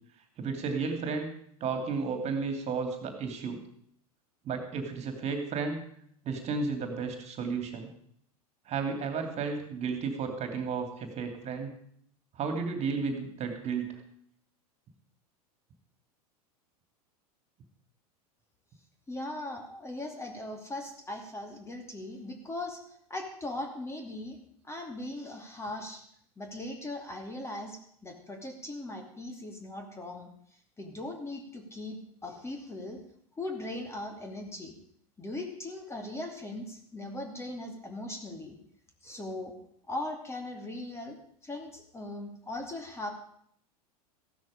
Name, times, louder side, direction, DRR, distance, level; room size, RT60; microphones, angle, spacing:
voice 1, 0.4-1.3 1.6-3.6 4.4-5.8 6.2-7.9 8.7-11.7 12.4-13.9, right 5 dB, 35° right, 6 dB, 2.8 m, -33 dB
voice 2, 19.1-24.4 24.6-26.0 26.4-30.3 30.8-33.0 33.4-34.7 35.2-38.6 39.0-39.5 39.9-41.2 41.4-43.1, left 2 dB, 15° left, 4 dB, 2.6 m, -39 dB
15.5 x 12.5 x 5.1 m, 0.65 s
figure-of-eight pair, 85°, 20 cm